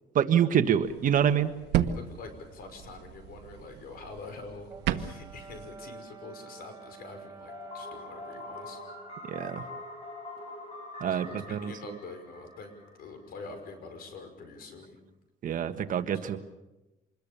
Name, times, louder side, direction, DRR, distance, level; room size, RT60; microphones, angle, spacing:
voice 1, 0.1-1.5 9.3-9.6 11.0-11.9 15.4-16.4, right 9 dB, 50° right, 9 dB, 1.5 m, -26 dB
sound 1, 0.8-5.7, right 11 dB, 85° right, 1.3 m, -34 dB
voice 2, 1.8-8.8 11.0-12.7 13.0-15.0 16.2-16.3, left 3 dB, 65° left, 7 dB, 5.8 m, -45 dB
Brass instrument, 4.7-9.1, right 4 dB, 20° right, 3.2 m, -48 dB
sound 2, 7.5-13.3, left 2 dB, 35° left, 8.0 m, -44 dB
26.5 x 21.5 x 6.9 m, 1.0 s
cardioid pair, 110°, 17 cm